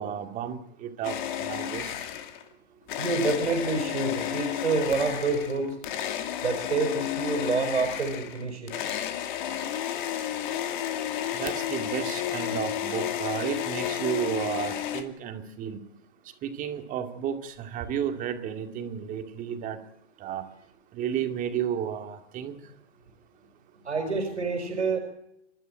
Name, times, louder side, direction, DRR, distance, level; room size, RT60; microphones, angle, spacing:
voice 1, 0.0-1.9 11.3-15.8 16.4-19.8 20.2-20.4 20.9-22.6, right 9 dB, 25° right, 6 dB, 2.3 m, -32 dB
sound 1, 1.0-2.5 2.9-15.0, left 10 dB, 45° left, 2.5 m, -32 dB
voice 2, 3.0-5.8 6.4-8.8 23.8-25.0, right 3 dB, 85° right, 5 dB, 4.8 m, -27 dB
28.0 x 13.0 x 9.0 m, 0.81 s
hypercardioid pair, 125°, 34 cm